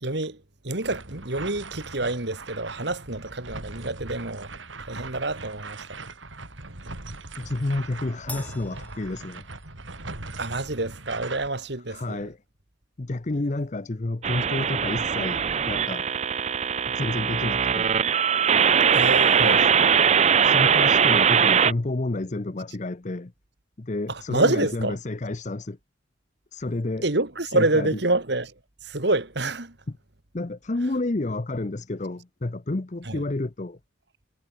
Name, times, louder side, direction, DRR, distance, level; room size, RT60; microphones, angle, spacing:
voice 1, 0.0-4.5 4.9-6.0 10.4-12.2 18.9-19.6 24.1-25.0 27.0-28.5 28.8-29.8 33.1-33.2, right 2 dB, 60° right, 2.2 m, -27 dB
sound 1, 0.8-11.5, right 3 dB, 75° right, 3.6 m, -40 dB
voice 2, 7.4-9.5 11.9-12.4 13.0-16.1 16.9-18.0 19.4-19.7 20.4-23.3 23.8-25.8 26.5-27.0 27.5-27.9 29.9-30.0 30.3-33.8, left 2 dB, 40° left, 0.7 m, -30 dB
Crash cymbal, 8.3-10.0, left 2 dB, 10° left, 6.4 m, -43 dB
sound 2, 14.2-21.7, right 7 dB, 35° right, 0.5 m, -21 dB
head